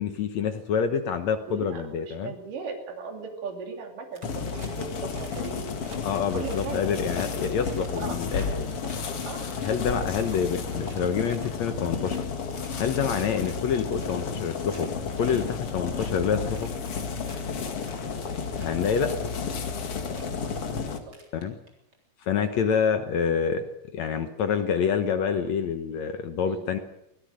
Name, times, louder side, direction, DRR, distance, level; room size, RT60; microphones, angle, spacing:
voice 1, 0.0-2.3 6.0-8.7 9.6-12.3 12.8-14.9 15.2-16.7 18.6-19.1 21.3-21.6 22.2-23.6 23.9-26.8, left 7 dB, 65° left, 8 dB, 2.0 m, -27 dB
voice 2, 1.5-6.0 6.3-6.9 8.0-8.2 9.2-10.0 20.8-21.0 22.4-22.5 26.4-26.6, right 5 dB, 65° right, 2 dB, 4.4 m, -38 dB
sound 1, 4.1-4.9 5.1-5.5 5.8-6.0 6.3-8.5 8.8-10.4 10.7-11.6 11.9-12.2 12.5-12.9 13.2-13.5 13.9-14.9 15.2-15.6 15.8-16.1 16.5-17.4 17.8-18.1 18.4-18.8 19.6-19.7 20.0-20.3 21.0-21.9, right 2 dB, 30° right, 4.2 m, -49 dB
sound 2, 4.2-21.0, left 5 dB, 45° left, 2.4 m, -32 dB
24.0 x 17.5 x 6.5 m, 0.82 s
omnidirectional pair, 4.1 m